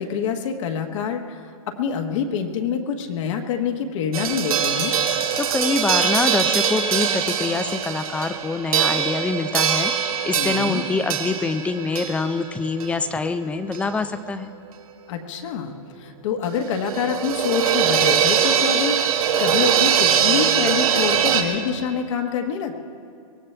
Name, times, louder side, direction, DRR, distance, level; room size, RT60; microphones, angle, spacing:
voice 1, 0.0-4.9 10.3-10.8 15.1-22.8, left 7 dB, 60° left, 3 dB, 1.3 m, -26 dB
sound 1, 4.1-14.0 14.3-14.4 16.5-21.4, right 8 dB, 85° right, 1.6 m, -22 dB
voice 2, 5.4-14.5, left 3 dB, 5° left, 11 dB, 0.4 m, -25 dB
23.0 x 17.0 x 3.3 m, 2.2 s
hypercardioid pair, 150°, 18 cm